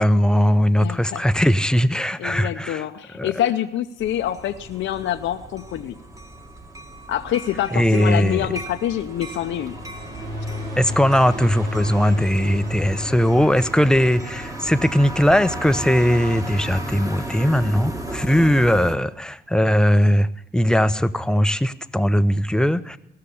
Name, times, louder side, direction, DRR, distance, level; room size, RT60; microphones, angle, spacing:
voice 1, 0.0-2.8 3.1-3.4 7.7-8.5 10.8-23.0, equal, 5° left, 0.6 m, -19 dB
voice 2, 0.8-1.2 2.2-5.9 7.1-9.7, left 11 dB, 75° left, 0.7 m, -26 dB
sound 1, 4.0-19.0, right 1 dB, 15° right, 1.6 m, -35 dB
sound 2, 9.3-15.8, left 1 dB, 65° right, 3.5 m, -35 dB
17.0 x 6.6 x 8.3 m
cardioid pair, 90°, 20 cm